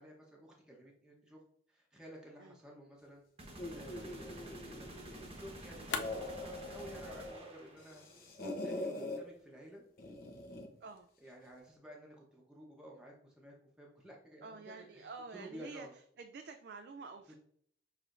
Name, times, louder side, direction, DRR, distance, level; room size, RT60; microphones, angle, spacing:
voice 1, 0.0-1.4 1.7-3.2 3.7-4.9 5.3-8.1 8.4-9.8 11.2-15.1 15.3-15.9 17.3-17.4, equal, 5° right, -3 dB, 0.9 m, -53 dB
sound 1, 3.4-8.1, right 1 dB, 30° right, 1.0 m, -50 dB
sound 2, 3.5-9.5, left 6 dB, 80° left, 0.5 m, -49 dB
sound 3, 3.6-5.3 5.8-7.4 7.8-9.2 10.0-10.8, left 1 dB, 55° left, 0.9 m, -43 dB
voice 2, 10.8-11.1 14.4-15.9 16.2-17.3, right 4 dB, 65° right, 7 dB, 0.4 m, -49 dB
6.3 x 3.3 x 2.5 m, 0.64 s
head